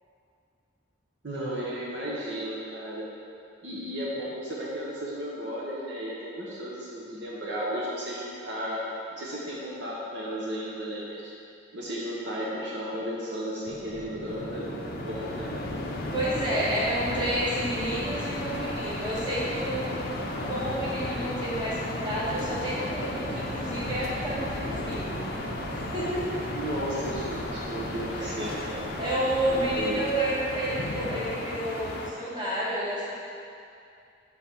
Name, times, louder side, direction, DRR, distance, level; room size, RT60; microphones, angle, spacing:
voice 1, 1.2-3.1 3.6-8.8 9.1-11.2 11.7-15.5 26.5-28.6 29.5-30.1, equal, 60° right, -5 dB, 1.0 m, -34 dB
sound 1, 13.6-30.1, right 2 dB, 45° right, 0.4 m, -41 dB
sound 2, 14.3-32.1, left 2 dB, 50° left, 0.6 m, -35 dB
voice 2, 16.1-19.9 20.4-25.2 25.7-26.4 28.2-28.4 29.0-33.2, right 1 dB, 25° right, -8 dB, 1.4 m, -30 dB
5.8 x 5.7 x 4.3 m, 2.5 s
head